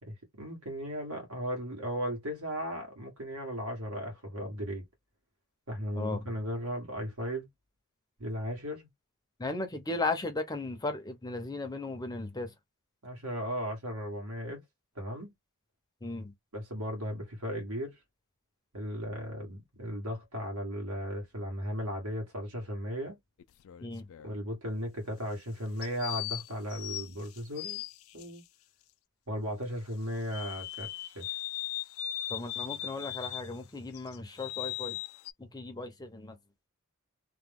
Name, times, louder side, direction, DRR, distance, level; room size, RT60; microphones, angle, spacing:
voice 1, 0.0-4.9 5.7-7.5 8.2-8.9 13.0-14.6 14.9-15.3 16.5-18.0 18.7-23.2 24.2-27.8 28.1-28.4 29.3-31.3, equal, 75° right, 1.6 m, -36 dB
voice 2, 9.4-12.5 16.0-16.3 23.8-24.1 32.3-35.0 35.4-36.4, left 3 dB, 15° left, 0.6 m, -36 dB
sound 1, 23.4-24.4 25.8-28.3 30.3-33.6 33.9-35.3, left 14 dB, 65° left, 0.3 m, -38 dB
3.0 x 2.2 x 3.5 m
head